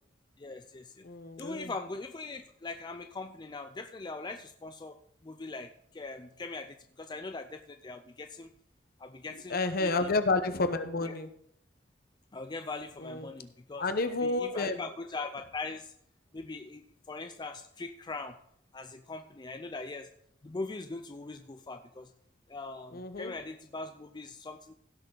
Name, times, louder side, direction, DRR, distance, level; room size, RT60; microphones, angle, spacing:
voice 1, 0.4-1.1 1.4-5.0 5.2-8.5 9.0-10.1 11.0-11.2 12.3-13.9 14.2-15.9 16.3-18.4 18.7-20.1 20.4-22.1 22.5-24.7, left 3 dB, 25° left, 7 dB, 0.5 m, -41 dB
voice 2, 1.0-1.7 9.5-11.3 13.0-13.3 13.8-14.8 22.9-23.3, left 3 dB, 55° left, 9 dB, 1.0 m, -30 dB
16.5 x 6.6 x 3.9 m, 0.69 s
head